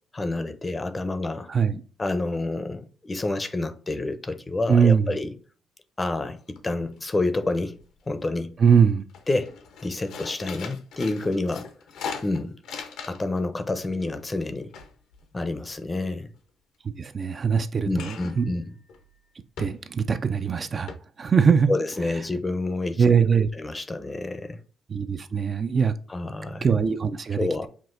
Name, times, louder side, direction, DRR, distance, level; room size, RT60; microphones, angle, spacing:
voice 1, 0.1-1.5 2.0-5.3 6.0-7.8 8.1-8.6 9.3-9.6 9.8-11.7 12.2-12.5 13.1-14.7 15.3-16.3 17.8-18.7 21.7-23.0 23.6-24.6 26.1-26.7 27.4-27.7, left 2 dB, 20° left, 0.6 m, -28 dB
voice 2, 1.5-1.8 4.7-5.2 8.6-9.1 17.0-18.4 19.6-20.9 21.2-21.7 23.0-23.5 24.9-25.9 26.6-27.4, right 6 dB, 40° right, 0.4 m, -21 dB
sound 1, 6.6-7.1 7.4-8.2 8.6-8.8 9.1-13.4 13.7-16.1 17.9-18.5 18.9-19.0 19.6-20.1 20.5-20.6 20.9-21.0, left 5 dB, 80° left, 0.8 m, -40 dB
5.9 x 2.3 x 2.5 m
cardioid pair, 90°, 0 cm